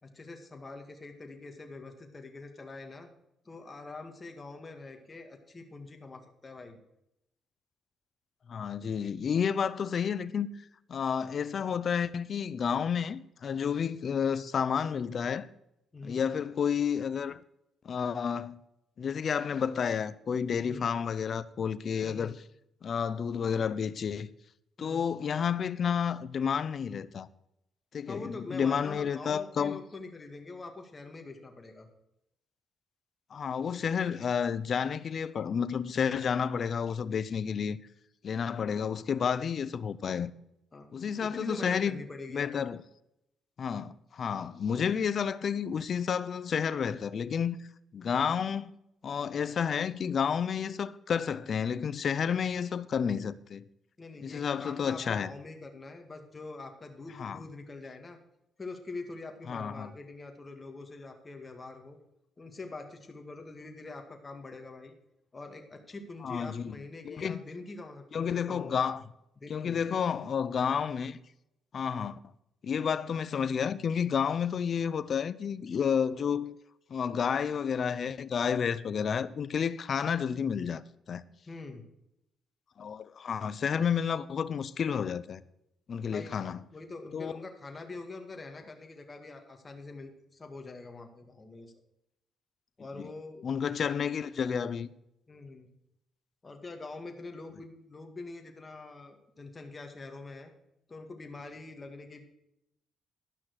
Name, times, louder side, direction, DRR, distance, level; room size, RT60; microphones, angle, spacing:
voice 1, 0.0-3.1 3.5-6.8 15.9-16.2 20.6-20.9 22.0-22.4 24.8-25.1 28.1-31.9 40.7-40.9 41.2-42.6 54.0-58.2 58.6-62.0 62.4-65.0 65.3-68.8 69.4-70.2 70.6-70.8 81.5-81.8 86.1-86.4 86.7-91.7 92.8-93.5 95.3-95.7 96.4-100.5 100.9-102.2, left 3 dB, 30° left, 2.0 m, -44 dB
voice 2, 8.5-10.5 10.9-15.5 16.0-17.4 17.8-18.6 19.0-22.4 22.8-24.3 24.8-27.3 27.9-29.8 33.3-37.8 38.2-40.3 40.9-42.0 42.3-42.8 43.6-47.6 47.9-48.7 49.0-53.6 54.2-55.3 57.2-57.4 59.5-59.9 66.2-66.8 67.0-67.4 68.1-69.0 69.5-71.2 71.7-72.2 72.6-76.5 76.9-80.8 81.1-81.2 82.8-85.4 85.9-86.6 87.1-87.3 93.4-94.9, left 7 dB, 50° left, 0.6 m, -30 dB
12.0 x 5.9 x 6.4 m
cardioid pair, 90°, 0 cm